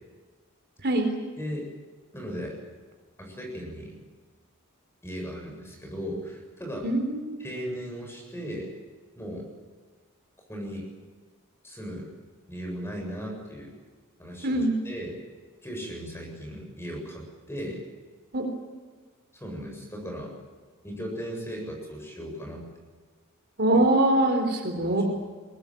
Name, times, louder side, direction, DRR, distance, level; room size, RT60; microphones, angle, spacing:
voice 1, 1.4-1.7 2.1-2.6 3.2-3.9 5.0-6.9 7.4-8.8 9.2-9.5 10.5-10.9 11.6-12.1 12.5-13.7 14.2-15.1 15.6-17.8 19.3-20.3 20.8-22.7 24.8-25.0, equal, 10° left, 1 dB, 7.5 m, -37 dB
voice 2, 6.8-7.5 14.4-14.7 18.3-18.5 23.6-25.0, right 1 dB, 50° right, 4 dB, 3.8 m, -23 dB
22.5 x 18.5 x 9.1 m, 1.4 s
head